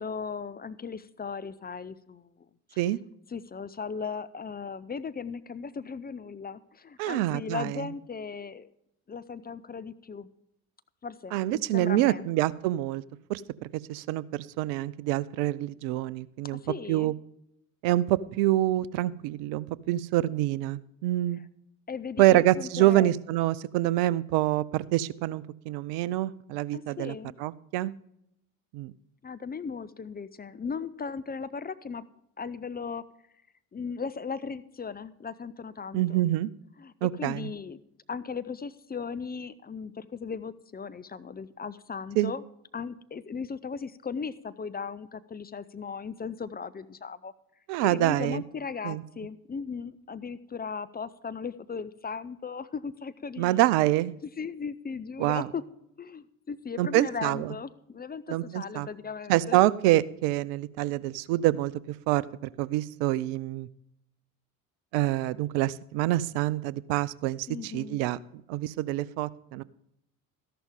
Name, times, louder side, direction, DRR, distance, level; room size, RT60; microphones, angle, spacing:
voice 1, 0.0-2.3 2.7-2.8 3.3-8.7 9.1-10.3 11.0-12.3 16.5-17.1 21.9-23.1 26.7-27.4 29.2-32.0 32.4-33.0 33.7-36.2 36.8-36.9 37.2-37.8 38.1-42.4 42.7-47.3 47.8-53.8 54.4-55.6 56.0-59.6 67.5-68.0, left 5 dB, 20° left, 15 dB, 0.7 m, -37 dB
voice 2, 7.0-7.8 11.3-13.0 13.3-13.4 13.9-16.6 16.9-17.1 17.8-21.4 22.2-27.9 28.7-28.9 35.9-36.5 37.0-37.5 42.2-42.3 47.7-48.4 48.8-49.0 53.4-54.1 55.2-55.5 56.8-57.5 58.3-58.9 59.3-61.7 62.1-63.7 64.9-68.2 68.5-69.6, right 15 dB, 65° right, 21 dB, 0.7 m, -26 dB
13.5 x 11.5 x 3.7 m, 0.77 s
hypercardioid pair, 60°, 44 cm